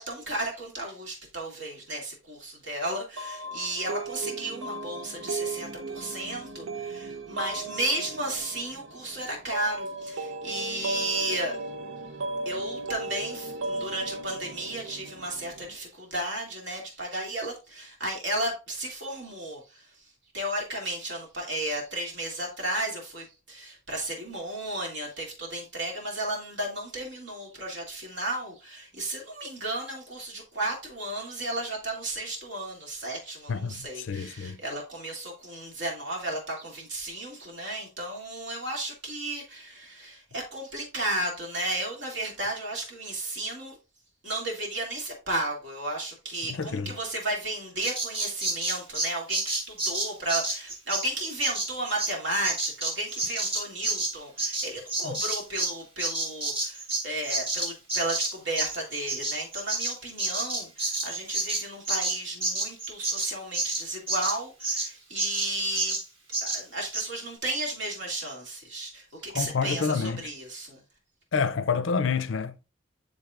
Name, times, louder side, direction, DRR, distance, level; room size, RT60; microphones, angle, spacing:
voice 1, 0.0-11.6 12.4-43.8 44.2-66.0 66.3-70.8, right 1 dB, 60° right, 2.4 m, -34 dB
sound 1, 3.2-15.8, right 2 dB, 80° right, 0.6 m, -36 dB
voice 2, 33.5-34.6 46.4-46.9 55.0-55.1 69.3-70.3 71.3-72.6, left 5 dB, 70° left, 0.5 m, -28 dB
Bird vocalization bird call bird song, 47.8-55.7 56.0-64.9 65.2-65.5 65.8-66.0 66.3-66.6 66.9-67.1, right 2 dB, 25° right, 1.4 m, -29 dB
10.5 x 3.6 x 2.4 m
head